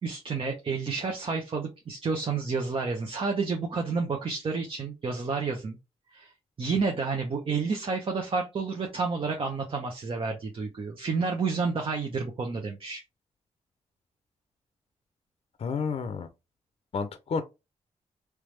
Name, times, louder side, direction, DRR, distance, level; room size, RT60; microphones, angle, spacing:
voice 1, 0.0-5.8 6.1-6.3 6.6-13.0, right 4 dB, 45° right, 0.9 m, -30 dB
voice 2, 15.6-16.3 16.9-17.4, left 5 dB, 55° left, 0.5 m, -30 dB
3.5 x 3.2 x 3.2 m
cardioid pair, 90°, 12 cm